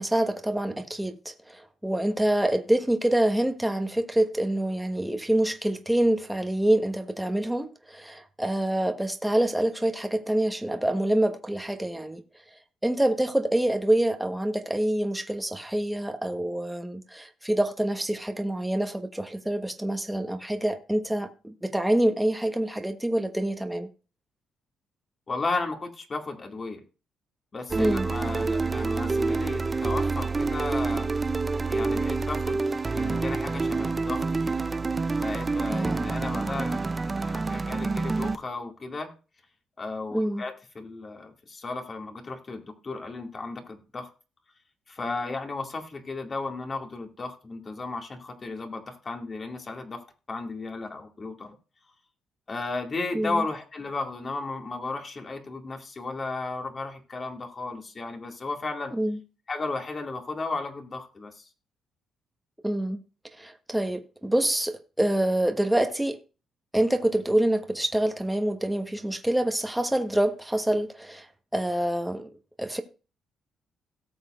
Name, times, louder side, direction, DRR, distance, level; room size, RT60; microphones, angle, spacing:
voice 1, 0.0-12.2 12.8-23.9 27.8-28.1 35.7-36.1 40.1-40.4 53.1-53.4 58.9-59.2 62.6-63.0 63.4-66.2 66.7-71.3 71.5-72.3 72.6-72.8, right 1 dB, 5° right, 1.2 m, -26 dB
voice 2, 25.3-26.8 27.5-31.1 31.6-34.6 35.2-39.1 39.8-44.1 44.9-51.6 52.5-58.9 59.5-61.5, left 3 dB, 35° left, 2.2 m, -34 dB
sound 1, 27.7-38.4, right 3 dB, 25° right, 0.5 m, -27 dB
17.5 x 7.1 x 2.5 m
cardioid pair, 90°, 0 cm